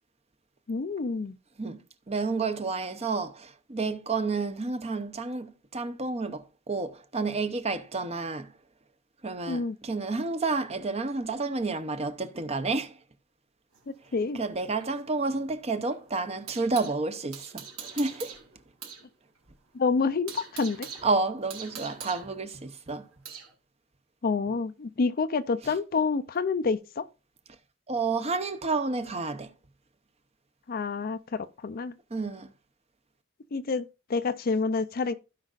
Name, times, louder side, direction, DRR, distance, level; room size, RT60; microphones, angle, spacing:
voice 1, 0.7-1.4 9.5-9.8 13.9-14.4 19.7-20.9 24.2-27.0 30.7-31.9 33.5-35.1, left 4 dB, 45° left, 0.5 m, -28 dB
voice 2, 2.1-5.5 5.7-8.5 9.2-12.9 14.3-18.4 21.0-23.0 27.9-29.5 32.1-32.5, right 3 dB, 30° right, 0.7 m, -30 dB
sound 1, 13.7-17.0 17.3-19.1 19.4-19.5 19.9-23.5, right 7 dB, 85° right, 2.8 m, -43 dB
16.0 x 5.3 x 2.4 m
head